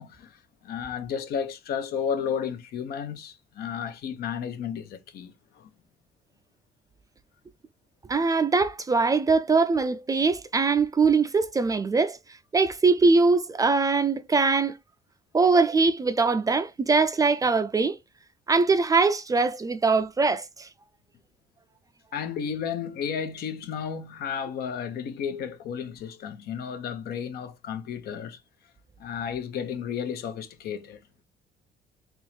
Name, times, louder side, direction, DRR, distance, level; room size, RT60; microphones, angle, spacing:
voice 1, 0.0-5.7 22.1-28.4 29.0-31.0, left 7 dB, 70° left, 0.9 m, -33 dB
voice 2, 8.1-12.2 12.5-14.8 15.3-18.0 18.5-20.7, right 4 dB, 20° right, 0.4 m, -22 dB
3.6 x 3.0 x 3.1 m
cardioid pair, 110°, 17 cm